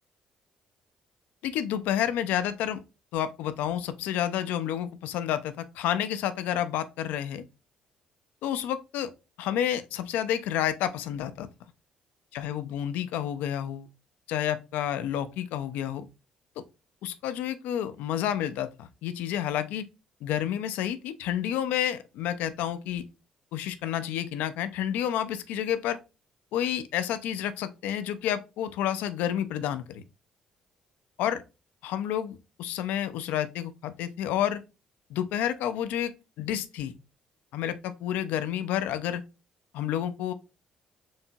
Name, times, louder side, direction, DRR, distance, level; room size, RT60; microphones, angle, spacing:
voice 1, 1.4-2.8 3.1-7.4 8.4-9.1 9.4-11.5 12.3-13.9 14.3-16.1 16.6-16.7 17.0-19.9 20.2-23.0 23.5-26.0 26.5-30.0 31.2-31.4 31.8-34.6 35.1-36.9 37.5-39.2 39.7-40.3, left 10 dB, 65° left, 0.4 m, -30 dB
4.5 x 2.7 x 2.7 m
figure-of-eight pair, 45°, 3 cm